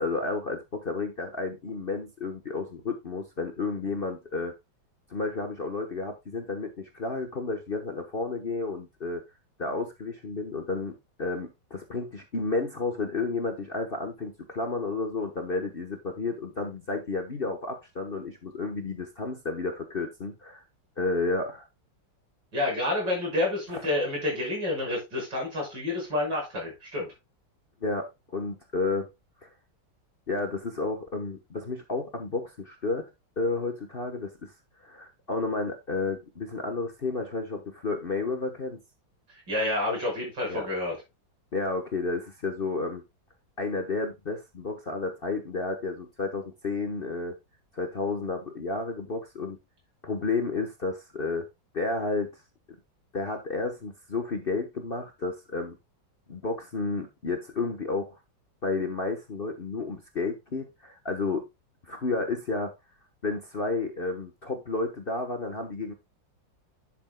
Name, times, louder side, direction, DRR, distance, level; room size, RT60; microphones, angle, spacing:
voice 1, 0.0-4.5 5.1-9.2 9.6-20.6 21.0-21.6 23.7-23.8 27.8-29.1 29.4-29.5 30.3-33.1 33.4-34.5 34.8-38.8 40.5-40.7 41.5-43.0 43.6-47.4 47.7-49.6 50.0-51.5 51.7-52.3 53.1-55.8 56.3-58.2 58.6-61.5 61.8-62.7 63.2-65.9, left 3 dB, 35° left, 1.1 m, -31 dB
voice 2, 22.5-27.1 39.5-40.9, left 2 dB, 70° right, 6.6 m, -29 dB
10.5 x 7.5 x 2.2 m
omnidirectional pair, 2.0 m